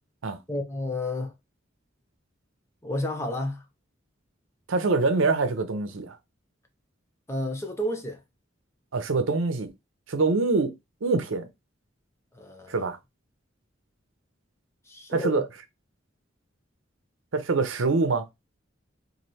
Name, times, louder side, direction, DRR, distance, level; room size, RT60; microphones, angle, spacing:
voice 1, 0.5-1.3 2.8-3.6 7.3-8.2 12.3-12.9 14.9-15.4, left 1 dB, 15° left, 0.7 m, -31 dB
voice 2, 4.7-6.2 8.9-9.7 10.1-10.7 11.0-11.5 12.7-13.0 15.1-15.4 17.3-18.2, right 3 dB, 90° right, 0.7 m, -24 dB
3.2 x 2.6 x 4.1 m
head